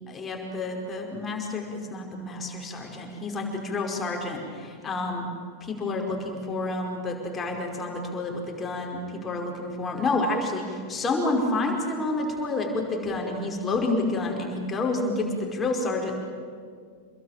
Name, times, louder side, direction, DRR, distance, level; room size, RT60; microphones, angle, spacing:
voice 1, 0.1-5.3 5.6-16.1, left 2 dB, 20° left, 1 dB, 5.2 m, -29 dB
28.0 x 21.5 x 9.1 m, 2.1 s
figure-of-eight pair, 90°, 0 cm